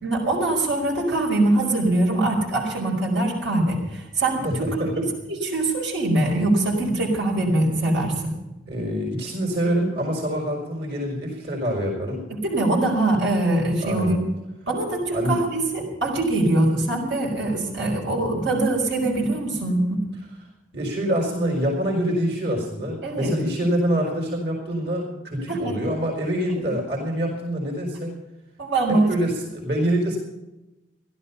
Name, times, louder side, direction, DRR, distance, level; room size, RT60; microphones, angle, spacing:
voice 1, 0.0-8.3 12.4-14.2 14.7-20.1 23.0-23.3 25.5-25.7 28.6-29.1, right 2 dB, 80° right, -3 dB, 4.8 m, -23 dB
voice 2, 4.4-5.1 8.7-12.2 13.8-14.2 15.1-15.4 20.7-28.2 28.9-30.2, equal, 60° right, -1 dB, 4.4 m, -25 dB
16.0 x 12.5 x 5.6 m, 0.99 s
head